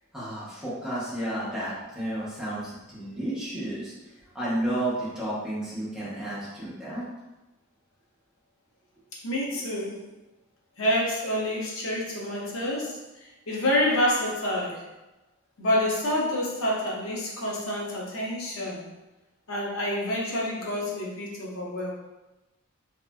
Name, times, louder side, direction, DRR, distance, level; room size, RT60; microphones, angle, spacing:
voice 1, 0.1-3.9 4.3-7.0, right 1 dB, 5° right, -10 dB, 0.7 m, -32 dB
voice 2, 9.2-10.0 10.8-14.8 15.6-18.9 19.5-21.9, left 1 dB, 85° left, -3 dB, 0.6 m, -28 dB
2.8 x 2.4 x 2.2 m, 1.0 s
head